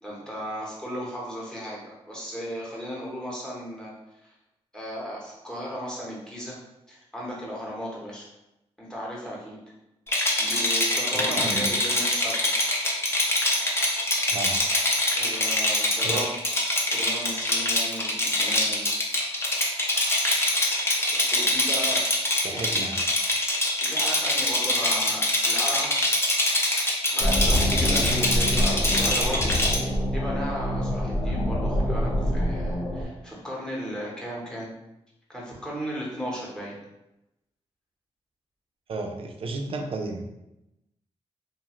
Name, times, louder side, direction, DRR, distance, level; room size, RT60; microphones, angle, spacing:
voice 1, 0.0-3.9 4.2-4.3 4.7-6.6 6.9-8.3 8.8-9.6 10.4-12.5 15.1-16.2 16.9-18.9 21.3-22.0 22.5-22.8 23.8-26.0 27.1-34.7 35.3-36.7, equal, 5° left, -4 dB, 1.0 m, -35 dB
Rattle, 10.1-29.8, left 1 dB, 25° left, 0.6 m, -24 dB
voice 2, 11.1-11.7 14.3-14.6 16.0-16.3 22.4-23.1 38.9-40.3, right 3 dB, 55° right, 3 dB, 0.4 m, -32 dB
sound 1, 27.2-33.0, equal, 90° left, 0.7 m, -25 dB
2.4 x 2.4 x 3.0 m, 0.92 s
cardioid pair, 90°, 11 cm